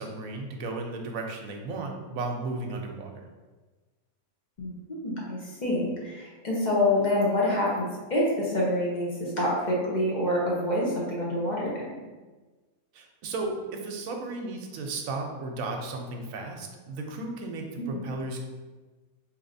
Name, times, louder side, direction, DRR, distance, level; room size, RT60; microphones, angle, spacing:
voice 1, 0.0-3.1 12.9-18.4, right 3 dB, 75° right, 2 dB, 1.0 m, -34 dB
voice 2, 5.0-11.8 17.8-18.1, left 1 dB, 40° left, -5 dB, 0.7 m, -27 dB
4.1 x 3.0 x 2.6 m, 1.3 s
omnidirectional pair, 1.5 m